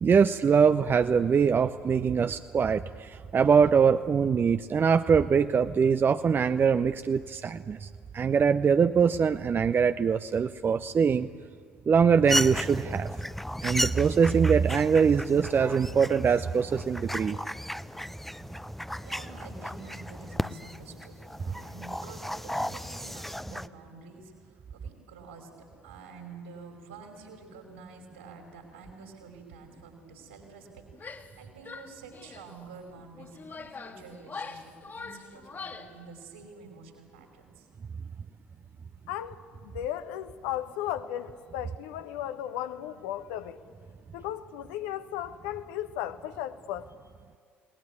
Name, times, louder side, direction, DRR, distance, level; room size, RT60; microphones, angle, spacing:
voice 1, 0.0-7.9 8.1-11.3 11.9-13.1 13.6-17.4, right 6 dB, 30° right, 11 dB, 0.7 m, -23 dB
sound 1, 12.3-23.7, left 1 dB, 5° left, 0.8 m, -35 dB
voice 2, 18.7-37.7, right 4 dB, 75° right, 3 dB, 5.3 m, -48 dB
Female speech woman speaking / Yell, 30.9-31.4 31.7-32.5 33.2-36.0, left 4 dB, 30° left, 2.1 m, -42 dB
voice 3, 39.1-43.6 44.1-46.9, left 11 dB, 65° left, 10 dB, 1.1 m, -35 dB
29.5 x 20.0 x 9.6 m, 2.1 s
figure-of-eight pair, 55°, 7 cm